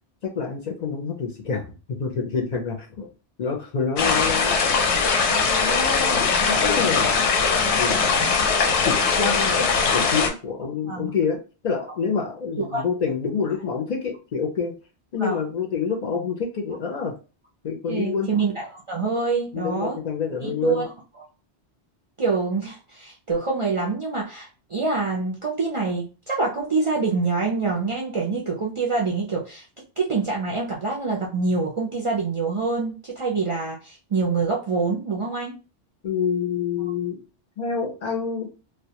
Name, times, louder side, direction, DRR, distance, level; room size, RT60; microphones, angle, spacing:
voice 1, 0.2-3.1 3.4-4.6 5.0-5.1 5.6-7.4 7.8-8.0 8.8-9.6 9.9-14.7 15.1-17.1 17.6-18.3 19.5-20.8 36.0-37.2 37.6-38.5, left 6 dB, 55° left, 2 dB, 0.5 m, -27 dB
sound 1, 4.0-10.3, left 5 dB, 90° left, 0.9 m, -21 dB
voice 2, 17.9-20.0 20.4-20.9 22.2-29.7 30.0-35.5, right 4 dB, 55° right, -3 dB, 0.3 m, -26 dB
2.2 x 2.2 x 2.7 m, 0.33 s
omnidirectional pair, 1.1 m